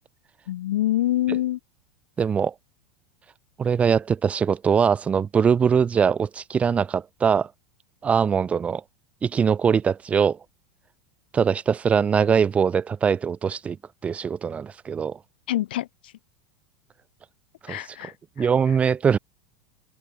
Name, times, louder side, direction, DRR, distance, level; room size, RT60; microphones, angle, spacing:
voice 1, 0.5-1.6 15.5-16.1 17.7-18.1 18.4-18.5, left 14 dB, 80° left, 5.7 m, -25 dB
voice 2, 2.2-2.5 3.6-7.5 8.0-8.8 9.2-10.4 11.3-13.8 14.0-15.2 17.6-17.8 18.4-19.2, right 6 dB, 25° right, 2.7 m, -22 dB
hypercardioid pair, 105°, 5 cm